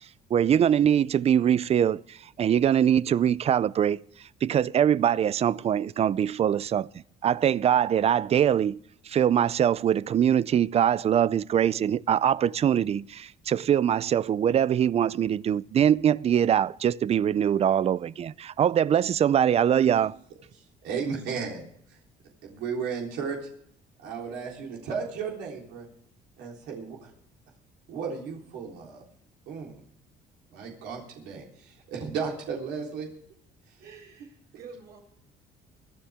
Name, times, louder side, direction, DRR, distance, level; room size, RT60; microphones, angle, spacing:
voice 1, 0.3-4.0 4.4-6.9 7.2-8.8 9.1-20.2, right 9 dB, 40° right, 0.4 m, -23 dB
voice 2, 20.5-21.6 22.4-23.5 24.0-25.8 26.4-27.1 27.9-29.0 29.5-29.8 30.5-33.1 33.7-33.8, right 6 dB, 85° right, 3.7 m, -34 dB
voice 3, 33.8-35.0, right 5 dB, 70° right, 5.3 m, -48 dB
24.0 x 10.0 x 3.5 m
cardioid pair, 110°, 17 cm